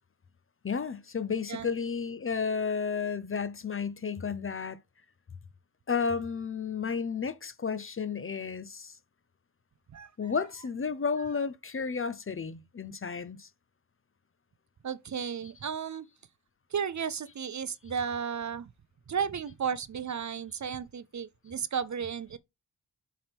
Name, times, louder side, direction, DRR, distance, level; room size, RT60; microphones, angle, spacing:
voice 1, 0.6-4.8 5.9-8.9 10.2-13.5, left 5 dB, 30° left, 0.6 m, -32 dB
voice 2, 9.9-10.3 14.8-16.1 16.7-18.7 19.1-22.4, right 7 dB, 45° right, 0.6 m, -34 dB
7.4 x 4.4 x 3.5 m
wide cardioid pair, 95°, 40 cm